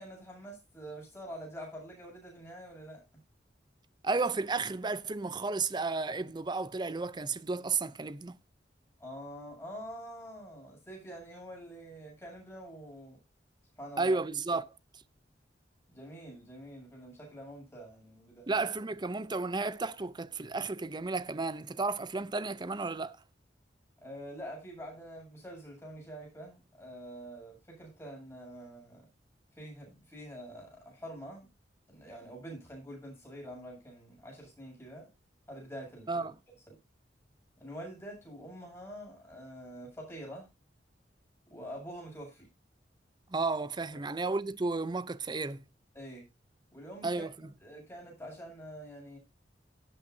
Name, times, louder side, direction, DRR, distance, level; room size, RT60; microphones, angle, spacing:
voice 1, 0.0-3.0 9.0-13.2 13.8-14.2 15.9-18.5 24.0-29.1 29.5-31.5 31.9-35.1 35.5-36.3 36.7-36.8 37.6-40.5 41.5-42.5 45.9-46.3 46.7-47.2 47.6-49.2, equal, 15° left, 7.6 m, -46 dB
voice 2, 4.0-8.4 14.0-14.7 18.5-23.2 36.1-36.3 43.3-45.6 47.0-47.5, right 3 dB, 25° right, 0.6 m, -33 dB
17.5 x 8.1 x 2.7 m
head